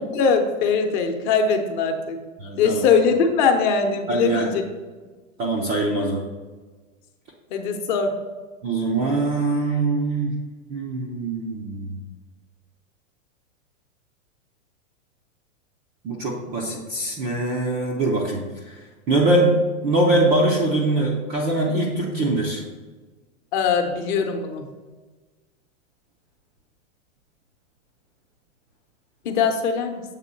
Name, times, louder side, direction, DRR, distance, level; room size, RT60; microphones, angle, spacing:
voice 1, 0.1-2.2 2.6-4.6 7.5-8.1 23.5-24.6 29.2-30.0, left 5 dB, 40° left, 5 dB, 0.8 m, -21 dB
voice 2, 2.4-2.9 4.1-4.5 5.4-6.2 8.6-10.4 10.7-12.0 16.0-18.4 19.1-19.6 19.8-22.6, right 2 dB, 15° right, -3 dB, 0.4 m, -22 dB
7.4 x 3.7 x 5.2 m, 1.3 s
supercardioid pair, 150°, 40 cm